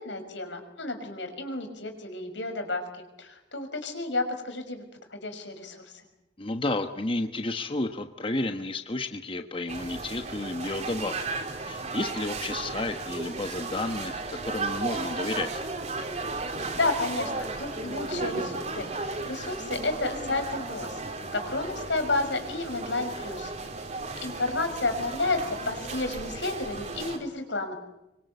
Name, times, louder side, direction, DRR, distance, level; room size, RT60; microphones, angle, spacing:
voice 1, 0.0-2.8 3.2-4.8 5.1-5.8 16.7-21.0 21.3-23.5 24.0-27.8, left 2 dB, 90° left, 6 dB, 6.0 m, -31 dB
voice 2, 6.4-11.2 11.7-15.6, left 2 dB, 30° left, 7 dB, 1.3 m, -31 dB
sound 1, 9.7-27.2, right 3 dB, 40° right, 3.7 m, -35 dB
24.5 x 24.5 x 8.4 m, 0.90 s
head